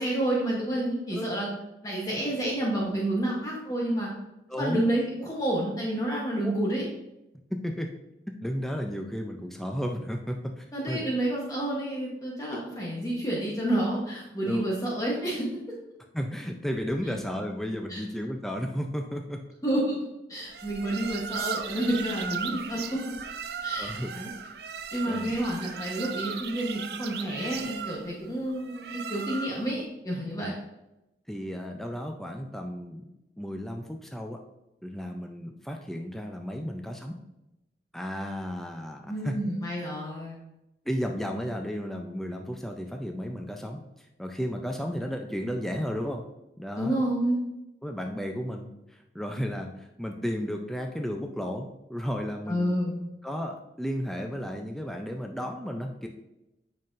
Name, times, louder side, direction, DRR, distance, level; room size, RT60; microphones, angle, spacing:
voice 1, 0.0-1.5 1.8-4.1 4.6-6.8 10.7-15.5 17.9-18.0 19.6-20.0 20.3-23.0 23.6-24.3 24.9-30.5 39.1-40.4 46.8-47.4 52.5-52.9, right 1 dB, 20° left, -4 dB, 1.0 m, -29 dB
voice 2, 4.5-4.8 6.4-6.5 7.6-7.9 8.4-11.1 14.4-14.6 16.1-19.4 23.8-24.1 25.0-25.3 30.4-30.5 31.3-33.0 33.4-34.4 34.8-37.2 37.9-39.3 40.9-43.8 44.2-46.2 46.6-47.0 47.8-52.8 53.2-56.1, equal, ahead, 3 dB, 0.4 m, -33 dB
sound 1, 20.5-29.7, right 7 dB, 65° right, 0.4 m, -37 dB
7.5 x 5.6 x 2.5 m, 0.92 s
head